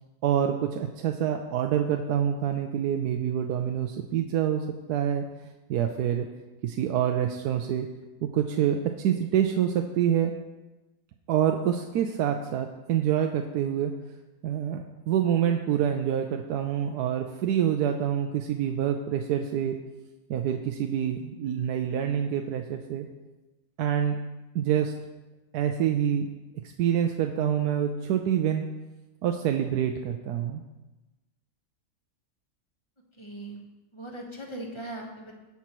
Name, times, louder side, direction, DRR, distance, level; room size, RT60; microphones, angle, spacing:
voice 1, 0.2-5.2 5.7-6.3 6.6-7.9 8.2-10.3 11.3-13.9 14.4-19.8 20.3-23.1 23.8-24.2 24.5-24.9 25.5-26.3 26.8-28.6 29.2-30.6, right 9 dB, 80° right, 4 dB, 1.1 m, -26 dB
voice 2, 33.2-33.6 33.9-35.3, right 1 dB, 20° left, 0 dB, 1.1 m, -39 dB
17.0 x 5.8 x 3.0 m, 1.1 s
omnidirectional pair, 1.7 m